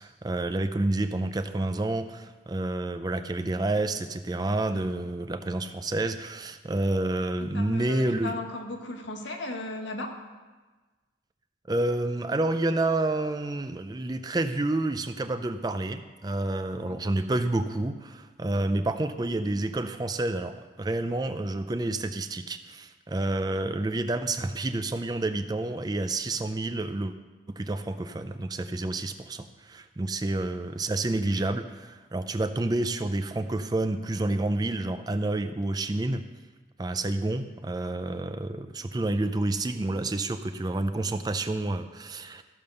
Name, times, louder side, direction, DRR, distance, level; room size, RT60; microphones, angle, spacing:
voice 1, 0.0-8.4 11.7-27.1 27.5-36.2 36.8-42.4, right 2 dB, 20° right, 9 dB, 0.4 m, -29 dB
voice 2, 7.4-10.1 16.8-17.0 37.0-37.1, left 2 dB, 80° left, 3 dB, 1.4 m, -36 dB
13.5 x 5.3 x 6.6 m, 1.3 s
head